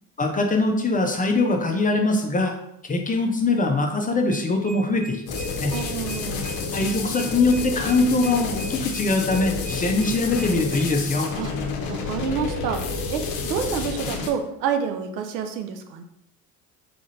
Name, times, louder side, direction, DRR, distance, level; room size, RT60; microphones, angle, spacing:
voice 1, 0.2-2.5 2.8-5.7 6.7-11.3, left 2 dB, 15° left, 3 dB, 0.6 m, -22 dB
sound 1, 4.0-10.9, right 3 dB, 35° right, 0.6 m, -41 dB
sound 2, 5.3-14.3, left 4 dB, 50° left, 0.9 m, -30 dB
voice 2, 5.7-6.5 11.4-11.5 11.9-16.0, right 7 dB, 85° right, 6 dB, 0.6 m, -28 dB
4.2 x 3.7 x 2.7 m, 0.77 s
hypercardioid pair, 65°, 49 cm